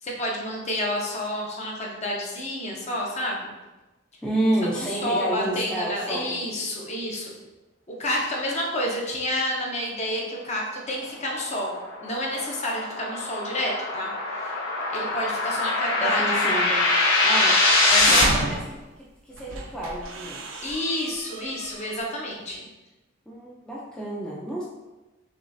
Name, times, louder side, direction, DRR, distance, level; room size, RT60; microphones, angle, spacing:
voice 1, 0.0-3.5 4.7-7.3 7.9-14.1 14.9-16.4 17.8-18.4 20.6-22.6, left 1 dB, 35° left, -2 dB, 0.8 m, -29 dB
voice 2, 4.2-6.5 16.0-16.9 17.2-18.8 19.3-20.7 23.3-24.6, right 1 dB, 5° left, -6 dB, 0.5 m, -30 dB
sound 1, 11.4-18.2, left 2 dB, 80° left, 0.9 m, -23 dB
sound 2, 17.7-18.8 19.3-22.1, right 2 dB, 80° right, 0.5 m, -33 dB
6.1 x 2.4 x 2.6 m, 1.1 s
head